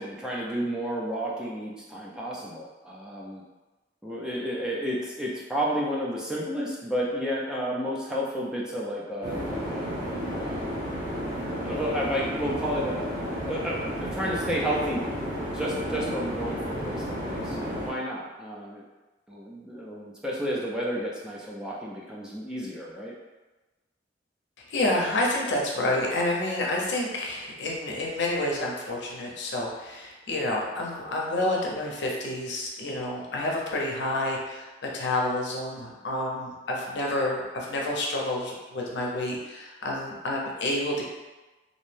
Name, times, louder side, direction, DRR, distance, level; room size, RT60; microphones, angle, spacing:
voice 1, 0.0-3.4 4.0-10.6 11.5-15.0 15.5-18.8 19.3-23.1, equal, 5° right, -5 dB, 0.4 m, -32 dB
sound 1, 9.2-17.9, equal, 25° right, 0.8 m, -32 dB
voice 2, 24.7-41.0, left 1 dB, 65° left, -2 dB, 0.6 m, -29 dB
2.5 x 2.1 x 3.2 m, 1.2 s
head